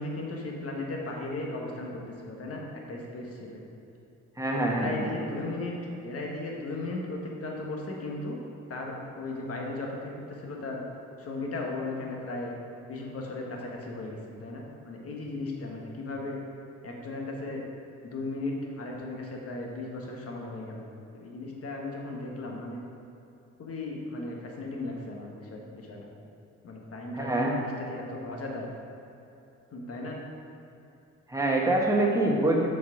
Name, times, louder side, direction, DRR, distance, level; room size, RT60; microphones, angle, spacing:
voice 1, 0.0-1.9 2.2-3.6 4.5-5.7 6.0-8.4 8.7-10.8 11.2-12.6 12.9-16.4 16.8-17.6 18.0-20.8 21.1-22.8 23.6-26.1 26.6-28.7 29.7-30.2, left 2 dB, 50° left, 0 dB, 1.4 m, -36 dB
voice 2, 4.4-5.4 27.1-27.6 31.3-32.7, right 2 dB, 10° right, -2 dB, 1.3 m, -25 dB
7.0 x 4.8 x 4.9 m, 2.9 s
cardioid pair, 90°, 30 cm